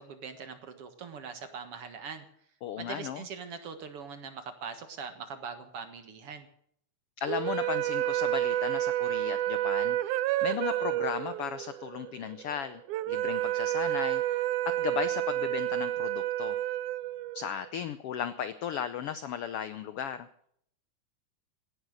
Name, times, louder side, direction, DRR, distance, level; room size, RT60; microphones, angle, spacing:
voice 1, 0.0-2.2 2.8-6.5, right 5 dB, 50° right, 9 dB, 2.1 m, -42 dB
voice 2, 2.6-3.2 7.2-10.0 10.4-12.8 13.1-14.5 14.8-16.6 17.3-20.3, left 8 dB, 85° left, 12 dB, 1.3 m, -35 dB
sound 1, 7.3-17.7, right 14 dB, 75° right, 2.1 m, -30 dB
17.5 x 11.5 x 6.5 m, 0.67 s
omnidirectional pair, 3.7 m